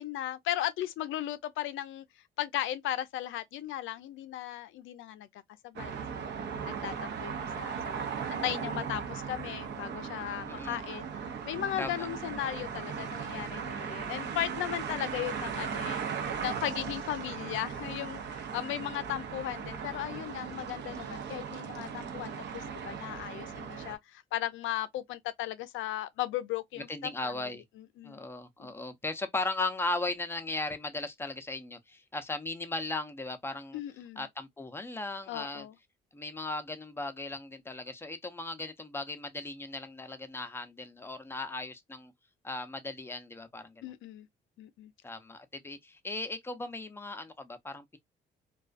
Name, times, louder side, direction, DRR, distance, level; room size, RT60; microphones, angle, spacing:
voice 1, 0.0-2.0 2.4-6.3 6.6-8.0 8.3-11.1 11.4-27.3 27.8-28.2 28.6-28.7 33.7-34.3 35.3-35.7 43.8-44.3 44.6-44.9, left 13 dB, 80° left, 0.4 m, -36 dB
sound 1, 5.8-24.0, right 6 dB, 60° right, 0.6 m, -38 dB
voice 2, 10.4-10.8 11.8-12.1 26.9-27.6 28.0-33.8 34.2-35.7 36.1-42.1 42.4-43.7 45.0-48.0, left 2 dB, 10° left, 0.5 m, -37 dB
2.4 x 2.3 x 2.3 m
cardioid pair, 90°, 20 cm